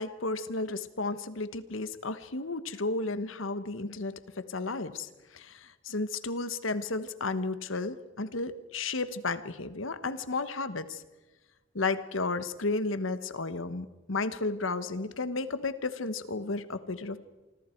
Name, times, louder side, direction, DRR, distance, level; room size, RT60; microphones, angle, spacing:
voice 1, 0.0-11.0 11.7-17.2, left 3 dB, 90° left, 12 dB, 1.2 m, -33 dB
25.5 x 25.5 x 4.6 m, 1.1 s
head